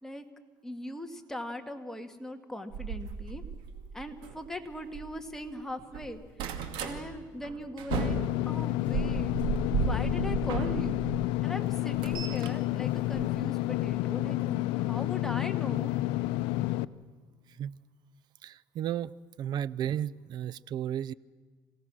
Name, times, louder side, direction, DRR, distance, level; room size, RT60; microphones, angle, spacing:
voice 1, 0.6-3.4 3.9-6.2 6.8-8.2 8.5-9.4 9.9-11.1 11.4-15.9, left 1 dB, 5° left, 4 dB, 2.0 m, -40 dB
door and lift, 2.7-5.5 5.8-7.0 7.4-11.2 11.6-13.8 14.9-15.1 15.5-15.6 15.8-15.9, right 6 dB, 80° right, 2.4 m, -35 dB
Engine / Mechanisms, 7.9-16.8, left 17 dB, 85° left, 0.6 m, -30 dB
voice 2, 18.4-21.1, right 10 dB, 60° right, 21 dB, 0.6 m, -34 dB
27.5 x 17.0 x 6.3 m, 1.5 s
cardioid pair, 100°, 8 cm